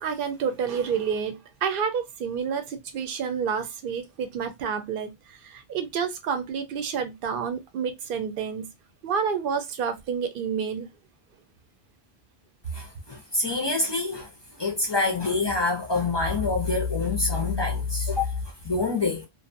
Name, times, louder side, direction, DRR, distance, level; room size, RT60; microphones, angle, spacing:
voice 1, 0.0-5.1 5.4-8.7 9.0-10.9, right 6 dB, 60° right, 0.7 m, -29 dB
voice 2, 12.7-14.3 14.6-18.4 18.6-19.3, left 3 dB, 35° left, 0.4 m, -26 dB
2.6 x 2.2 x 2.5 m
omnidirectional pair, 1.1 m